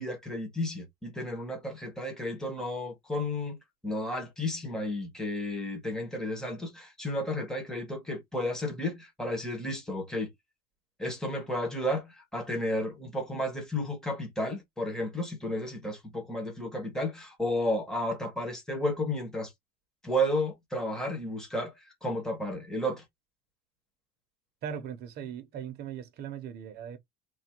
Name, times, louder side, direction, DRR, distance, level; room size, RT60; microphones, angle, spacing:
voice 1, 0.0-3.6 3.8-10.3 11.0-19.5 20.0-23.0, left 1 dB, ahead, 0.9 m, -32 dB
voice 2, 24.6-27.0, right 8 dB, 35° right, 0.7 m, -39 dB
3.3 x 2.3 x 4.4 m
cardioid pair, 180°, 30 cm